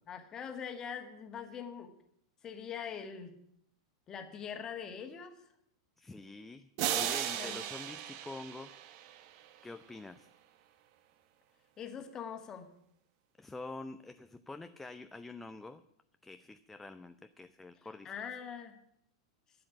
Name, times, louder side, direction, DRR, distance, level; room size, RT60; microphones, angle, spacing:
voice 1, 0.1-1.9 2.4-3.3 4.1-5.3 7.4-7.6 11.8-12.7 18.0-18.8, left 7 dB, 25° left, 7 dB, 1.7 m, -42 dB
voice 2, 6.0-8.7 9.6-10.3 13.4-15.8 16.2-18.1, left 2 dB, 10° left, 9 dB, 0.5 m, -46 dB
sound 1, 6.8-9.5, right 10 dB, 45° right, 1.1 m, -36 dB
12.5 x 7.8 x 9.8 m, 0.74 s
figure-of-eight pair, 90°, 2 cm